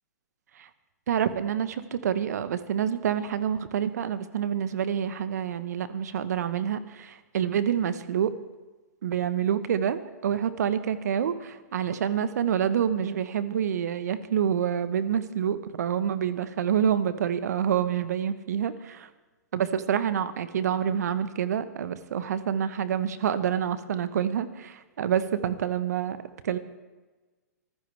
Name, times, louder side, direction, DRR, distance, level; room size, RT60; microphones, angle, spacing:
voice 1, 1.1-8.3 9.0-19.1 19.5-26.2 26.4-26.6, right 9 dB, 65° right, 13 dB, 1.2 m, -27 dB
24.5 x 14.5 x 3.5 m, 1.2 s
hypercardioid pair, 115°, 10 cm